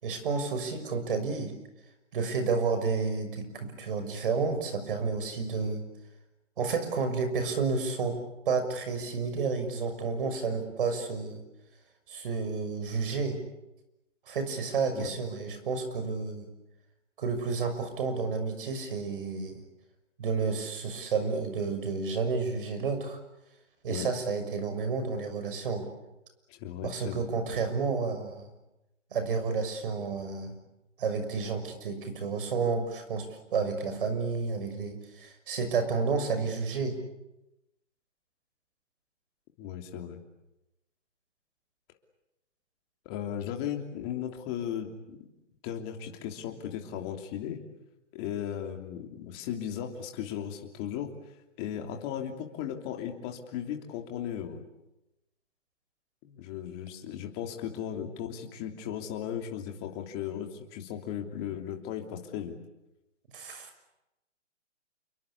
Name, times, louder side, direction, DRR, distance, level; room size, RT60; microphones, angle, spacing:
voice 1, 0.0-1.5 2.1-5.8 6.6-8.2 8.4-11.4 12.1-13.4 14.3-16.5 17.2-19.6 20.2-23.2 23.8-25.9 26.8-28.5 29.1-30.5 31.0-33.3 33.5-37.0 63.3-63.7, right 4 dB, 45° right, 8 dB, 6.5 m, -31 dB
voice 2, 26.5-27.3 39.6-40.2 43.0-45.2 45.6-47.6 48.1-51.1 51.6-54.6 56.2-62.6, left 9 dB, 20° left, 3 dB, 3.1 m, -36 dB
29.0 x 23.0 x 8.5 m, 0.94 s
hypercardioid pair, 160°, 36 cm